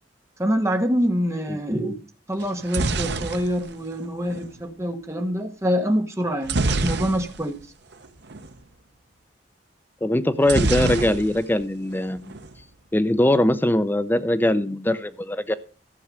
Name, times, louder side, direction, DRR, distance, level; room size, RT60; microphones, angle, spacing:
voice 1, 0.4-1.9 2.3-7.6, equal, 15° right, 1.3 m, -25 dB
sound 1, 2.4-4.5 6.4-7.6 7.9-8.0 8.3-8.5 10.4-11.6 11.9-12.5, right 3 dB, 65° right, 0.9 m, -26 dB
voice 2, 10.0-12.3 12.9-15.5, left 1 dB, 10° left, 0.6 m, -21 dB
13.5 x 7.0 x 6.3 m
head